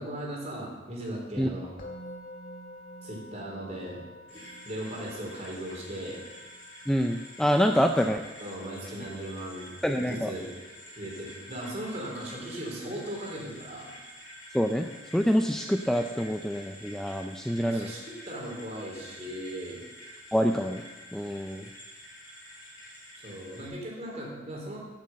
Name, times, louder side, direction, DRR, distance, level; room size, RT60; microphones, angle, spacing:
voice 1, 0.0-1.7 3.0-4.0 4.3-6.2 8.4-9.7 10.1-10.5 11.0-13.9 17.6-19.8 23.2-24.8, right 1 dB, 35° right, -2 dB, 3.5 m, -38 dB
Musical instrument, 1.8-12.9, equal, 45° left, 1.8 m, -50 dB
sound 1, 4.3-23.7, equal, 80° left, 4.7 m, -48 dB
voice 2, 6.9-8.2 9.8-10.3 14.5-17.9 20.3-20.8 21.1-21.7, equal, 5° left, 5 dB, 0.4 m, -26 dB
9.7 x 8.5 x 7.6 m, 1.2 s
head